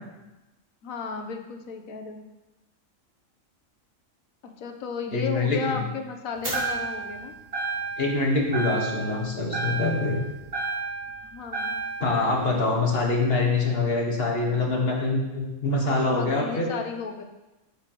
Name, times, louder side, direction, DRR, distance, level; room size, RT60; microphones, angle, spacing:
voice 1, 0.8-2.2 4.4-7.3 11.2-11.8 15.8-17.2, left 5 dB, 80° left, 4 dB, 1.2 m, -34 dB
voice 2, 5.1-5.8 8.0-10.2 12.0-16.7, left 3 dB, 45° left, -2 dB, 1.7 m, -24 dB
sound 1, 6.4-7.2 7.5-8.2 8.5-9.2 9.5-11.2 11.5-12.1, right 4 dB, 65° right, 3.4 m, -30 dB
9.1 x 6.9 x 3.0 m, 1.1 s
omnidirectional pair, 1.4 m